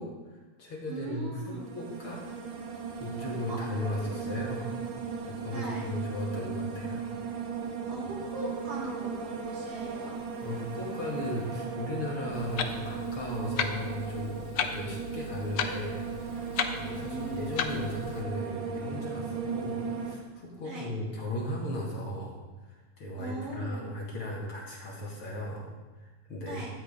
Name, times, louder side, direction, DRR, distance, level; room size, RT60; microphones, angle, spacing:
voice 1, 0.0-2.2 3.0-4.8 5.3-7.1 10.4-22.4 22.7-26.6, left 1 dB, 45° left, -3 dB, 2.6 m, -36 dB
voice 2, 0.9-1.7 3.5-3.6 5.5-5.9 7.9-10.1 16.8-17.5 20.6-20.9 23.2-23.8 26.4-26.7, right 2 dB, 80° right, -4 dB, 4.5 m, -39 dB
sound 1, 1.4-20.2, right 5 dB, 60° right, 2.2 m, -37 dB
Clock, 12.3-18.2, left 6 dB, 90° left, 1.2 m, -35 dB
13.0 x 9.1 x 5.1 m, 1.2 s
omnidirectional pair, 3.7 m